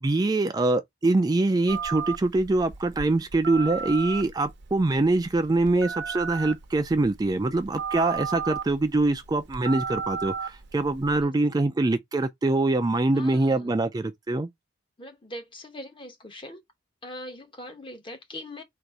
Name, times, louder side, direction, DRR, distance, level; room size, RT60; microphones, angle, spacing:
voice 1, 0.0-14.5, right 2 dB, 20° right, 0.4 m, -24 dB
Telephone, 1.7-11.2, right 6 dB, 65° right, 0.7 m, -35 dB
voice 2, 13.1-13.8 15.0-16.6 17.0-18.6, left 1 dB, 25° left, 1.0 m, -41 dB
3.9 x 2.5 x 4.6 m
head